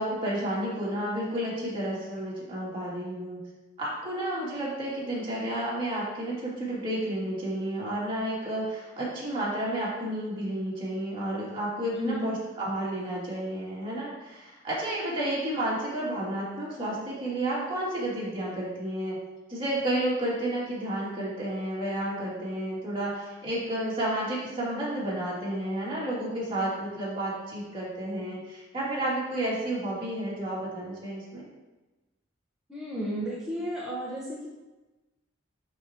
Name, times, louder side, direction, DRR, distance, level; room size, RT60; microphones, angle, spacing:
voice 1, 0.0-3.4 3.8-19.2 19.5-31.4, right 1 dB, 25° right, -7 dB, 2.6 m, -31 dB
voice 2, 11.9-12.3 32.7-34.5, equal, 5° right, -9 dB, 1.1 m, -33 dB
11.5 x 4.7 x 3.0 m, 1.1 s
head